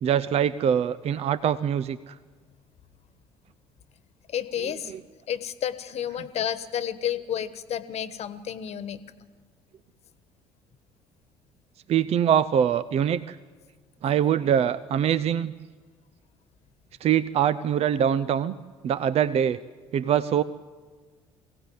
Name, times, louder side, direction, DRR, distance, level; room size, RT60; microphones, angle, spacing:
voice 1, 0.0-2.2 4.9-5.0 11.9-13.4 14.0-15.5 17.0-18.5 18.8-19.6 19.9-20.4, right 9 dB, 45° right, 16 dB, 0.7 m, -23 dB
voice 2, 4.3-4.9 5.3-9.0, left 9 dB, 50° left, 13 dB, 1.3 m, -31 dB
23.0 x 17.0 x 9.5 m, 1.5 s
hypercardioid pair, 60°, 14 cm